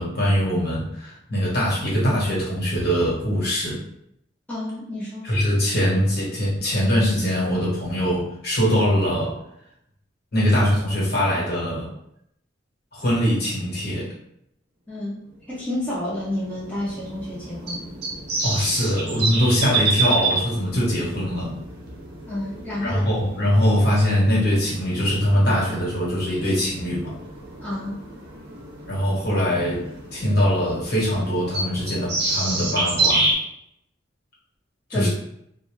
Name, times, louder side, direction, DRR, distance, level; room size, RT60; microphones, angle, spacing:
voice 1, 0.0-3.8 5.2-9.4 10.3-11.9 12.9-14.1 18.4-21.6 22.8-27.2 28.9-29.8 30.1-33.3 34.9-35.1, equal, 50° left, -5 dB, 1.1 m, -22 dB
voice 2, 4.5-5.3 14.9-15.2 15.5-17.8 22.3-23.0 27.6-28.0 34.9-35.1, left 1 dB, 10° left, -9 dB, 0.6 m, -29 dB
sound 1, 15.6-33.3, right 2 dB, 55° right, 0.7 m, -29 dB
2.5 x 2.1 x 3.0 m, 0.75 s
head